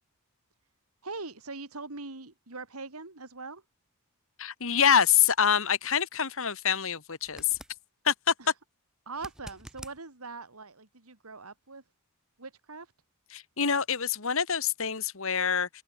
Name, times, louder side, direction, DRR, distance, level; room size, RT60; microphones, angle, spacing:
voice 1, 1.0-3.6 8.4-8.5 9.1-11.8 12.4-12.9, right 3 dB, 75° right, 2.8 m, -42 dB
voice 2, 4.4-7.6 8.1-8.3 13.3-15.7, left 7 dB, 65° left, 1.9 m, -26 dB
sound 1, 7.2-7.8 9.1-10.0 13.0-13.1, equal, 5° right, 3.6 m, -47 dB
head